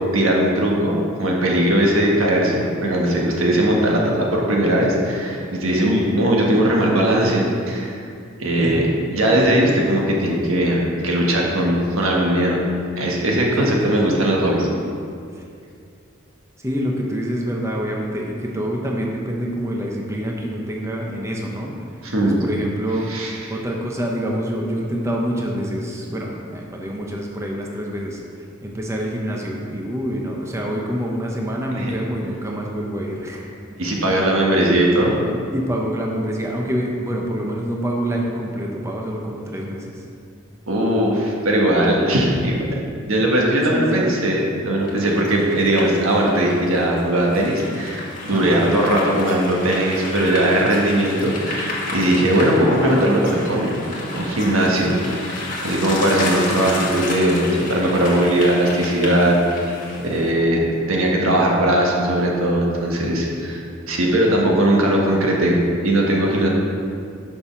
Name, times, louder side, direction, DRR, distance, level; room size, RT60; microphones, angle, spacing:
voice 1, 0.0-8.0 8.4-8.8 9.1-12.6 13.0-14.7 22.0-22.4 23.1-23.4 31.7-31.9 33.8-35.2 40.7-42.6 43.0-53.8 54.1-59.7 60.0-66.5, right 1 dB, 90° right, -2 dB, 1.4 m, -19 dB
voice 2, 8.6-8.9 13.6-14.1 15.4-15.5 16.6-21.7 22.2-23.1 23.5-28.2 28.6-33.5 35.3-40.0 43.7-44.1 48.3-48.7 55.6-55.9, equal, 15° right, -1 dB, 0.7 m, -26 dB
sound 1, 44.9-60.3, left 2 dB, 40° left, 1.5 m, -31 dB
7.1 x 5.3 x 5.7 m, 2.4 s
head